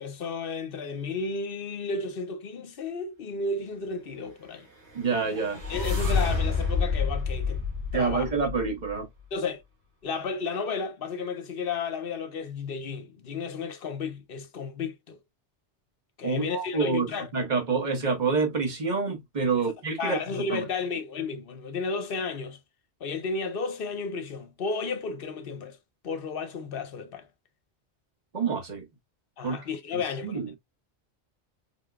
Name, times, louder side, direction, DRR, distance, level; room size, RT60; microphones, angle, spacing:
voice 1, 0.0-4.7 5.7-7.6 7.9-8.3 9.3-9.6 10.0-15.2 16.2-17.3 19.6-19.7 20.0-22.6 23.0-25.8 26.0-27.3 29.4-30.6, left 4 dB, 55° left, 0.8 m, -33 dB
sound 1, 4.8-8.9, left 4 dB, 65° right, 2.1 m, -29 dB
voice 2, 4.9-5.6 7.9-9.1 16.2-17.1 17.3-20.6 28.3-28.8 29.4-29.6 30.2-30.6, right 4 dB, 40° right, 1.2 m, -27 dB
3.9 x 3.6 x 2.2 m
omnidirectional pair, 1.2 m